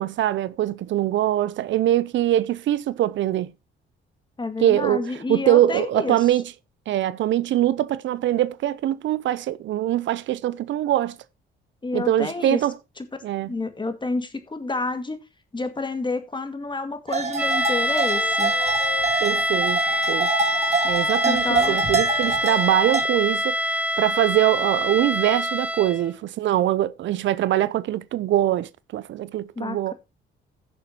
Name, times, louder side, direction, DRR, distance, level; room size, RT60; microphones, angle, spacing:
voice 1, 0.0-3.5 4.6-6.4 6.9-11.2 11.9-12.7 13.2-13.5 19.2-19.8 20.1-20.3 20.8-29.9, right 13 dB, 70° right, 0.6 m, -23 dB
voice 2, 4.4-6.3 11.8-12.6 13.5-15.2 15.5-18.5 21.2-21.8 29.6-29.9, left 3 dB, 25° left, 2.0 m, -29 dB
sound 1, 17.1-23.0, right 4 dB, 35° right, 2.5 m, -27 dB
sound 2, 17.4-26.1, equal, 5° right, 1.2 m, -25 dB
Wind instrument woodwind instrument, 18.1-23.4, left 6 dB, 50° left, 2.1 m, -38 dB
16.0 x 6.9 x 2.9 m
cardioid pair, 90°, 20 cm